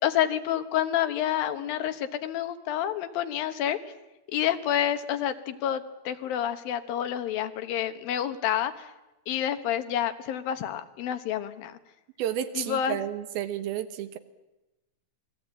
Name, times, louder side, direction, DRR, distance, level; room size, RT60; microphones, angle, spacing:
voice 1, 0.0-3.8 4.3-8.9 9.3-11.8 12.6-13.0, left 10 dB, 75° left, 9 dB, 2.9 m, -28 dB
voice 2, 12.2-14.2, right 11 dB, 90° right, 10 dB, 3.1 m, -31 dB
27.5 x 20.5 x 8.8 m, 0.98 s
omnidirectional pair, 4.2 m